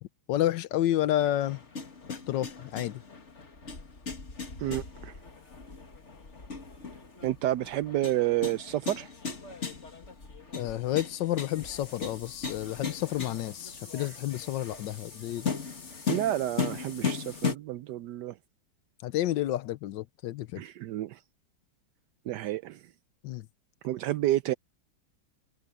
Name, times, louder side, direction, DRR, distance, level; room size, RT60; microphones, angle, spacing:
voice 1, 0.3-1.6 2.1-3.0 10.5-15.5 19.0-20.6 23.2-23.5, left 13 dB, 85° left, 1.4 m, -30 dB
sound 1, 1.4-17.6, left 5 dB, 40° left, 2.4 m, -37 dB
voice 2, 4.6-5.1 7.2-9.1 14.0-14.1 16.1-18.3 20.6-21.2 22.3-22.8 23.8-24.5, right 14 dB, 75° right, 1.2 m, -30 dB
omnidirectional pair, 1.9 m